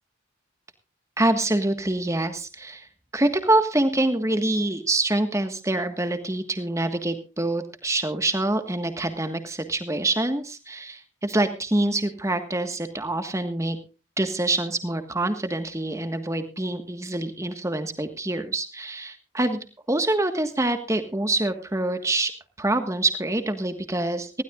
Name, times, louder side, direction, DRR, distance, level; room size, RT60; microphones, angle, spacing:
voice 1, 1.2-13.8 14.2-19.6 19.9-22.3 22.6-24.4, right 2 dB, 15° right, 8 dB, 1.4 m, -25 dB
19.5 x 16.0 x 2.4 m, 0.32 s
head